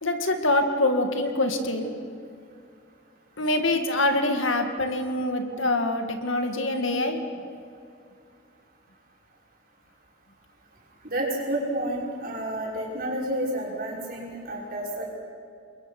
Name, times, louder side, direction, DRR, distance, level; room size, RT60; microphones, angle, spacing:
voice 1, 0.0-1.9 3.4-7.2, left 2 dB, 70° left, 5 dB, 2.1 m, -25 dB
voice 2, 11.0-15.1, right 1 dB, 45° right, -3 dB, 6.0 m, -30 dB
29.5 x 22.5 x 6.1 m, 2.4 s
head